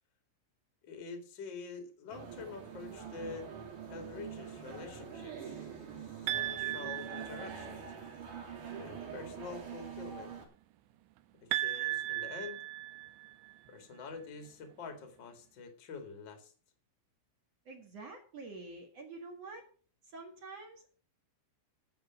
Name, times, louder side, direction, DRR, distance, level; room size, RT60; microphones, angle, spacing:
voice 1, 0.8-3.5 3.9-5.7 6.0-7.9 8.8-10.3 11.5-12.6 13.7-16.5, left 4 dB, 75° left, 6 dB, 1.0 m, -46 dB
sound 1, 2.1-10.5, right 7 dB, 45° right, 3.4 m, -45 dB
sound 2, 6.3-7.9 11.5-13.5, right 16 dB, 80° right, 2.6 m, -36 dB
voice 2, 17.6-19.6 20.1-20.9, right 3 dB, 65° right, 2 dB, 1.6 m, -47 dB
16.0 x 5.3 x 5.8 m, 0.41 s
omnidirectional pair, 5.9 m